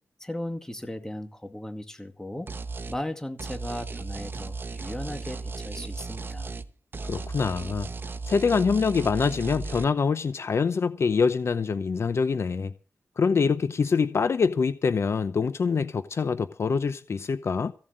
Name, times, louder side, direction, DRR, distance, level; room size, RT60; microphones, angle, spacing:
voice 1, 0.2-2.5 2.9-6.6, left 1 dB, 10° left, 2.2 m, -36 dB
sound 1, 2.5-3.0 3.4-6.7 6.9-9.8, right 3 dB, 40° right, 1.1 m, -36 dB
voice 2, 7.1-7.9 8.3-12.7 13.2-17.7, left 5 dB, 55° left, 0.8 m, -25 dB
16.0 x 7.4 x 8.8 m
wide cardioid pair, 110°, 5 cm